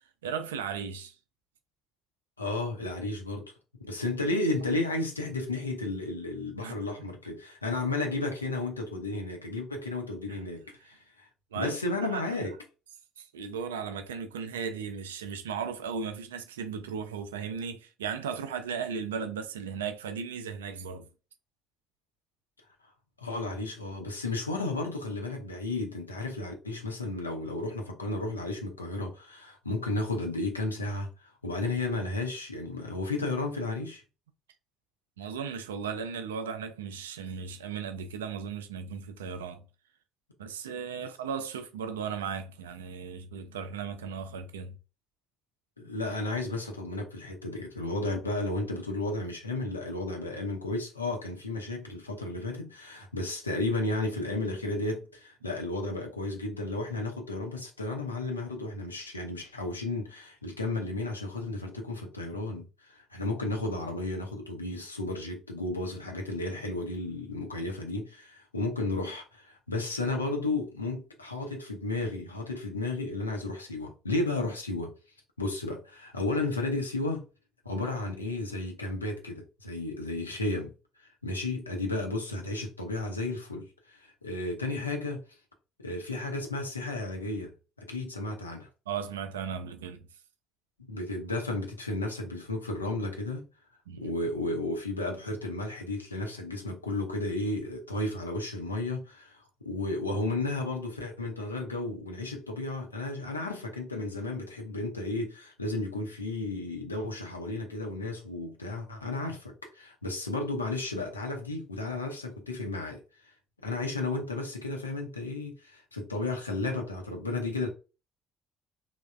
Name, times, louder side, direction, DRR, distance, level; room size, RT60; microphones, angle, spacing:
voice 1, 0.2-1.2 6.6-6.8 10.3-10.4 11.5-12.4 13.2-21.1 35.2-39.6 40.4-44.8 88.9-90.1 93.9-94.1, right 6 dB, 80° right, 0.3 m, -36 dB
voice 2, 2.4-3.5 3.8-11.3 11.5-12.5 23.2-34.0 45.8-74.9 75.4-77.3 77.6-80.7 81.2-85.2 85.8-88.7 90.8-93.5 94.0-113.0 113.6-117.7, left 2 dB, 90° left, 0.5 m, -33 dB
3.1 x 2.0 x 2.4 m
figure-of-eight pair, 50°, 0 cm